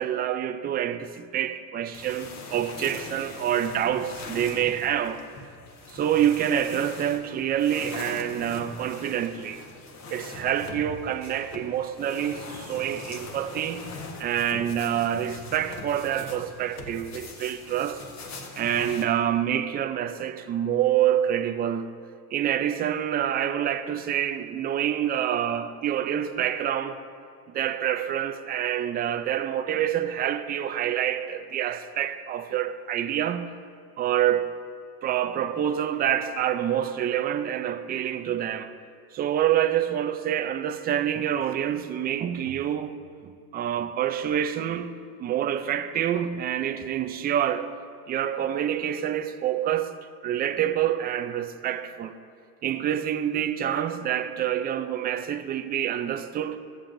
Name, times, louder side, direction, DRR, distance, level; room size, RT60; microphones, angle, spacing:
voice 1, 0.0-5.2 5.9-9.6 10.1-13.9 14.2-18.0 18.6-21.9 22.3-27.0 27.5-33.5 34.0-34.5 35.0-38.7 39.1-43.0 43.2-44.9 45.2-47.7 48.1-49.9 50.2-52.1 52.6-56.6, right 10 dB, 20° right, 0.4 m, -27 dB
sound 1, 1.9-19.1, left 2 dB, 35° left, 1.3 m, -41 dB
22.0 x 7.6 x 2.6 m
supercardioid pair, 125°, 48 cm